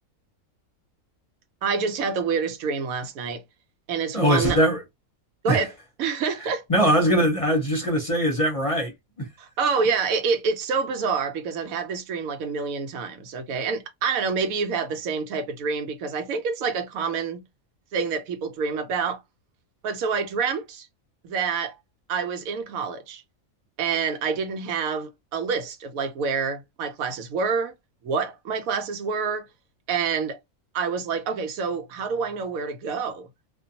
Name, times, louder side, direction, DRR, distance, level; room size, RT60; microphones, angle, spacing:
voice 1, 1.6-3.4 3.9-4.6 5.4-5.7 6.0-6.6 9.4-17.4 17.9-19.2 19.8-20.9 21.2-21.8 22.1-23.2 23.8-27.7 28.0-29.5 29.9-30.4 30.7-33.3, right 5 dB, 90° right, 1.1 m, -27 dB
voice 2, 4.1-4.8 5.5-5.6 6.7-9.3, equal, 30° left, 0.7 m, -21 dB
2.5 x 2.2 x 2.7 m
omnidirectional pair, 1.4 m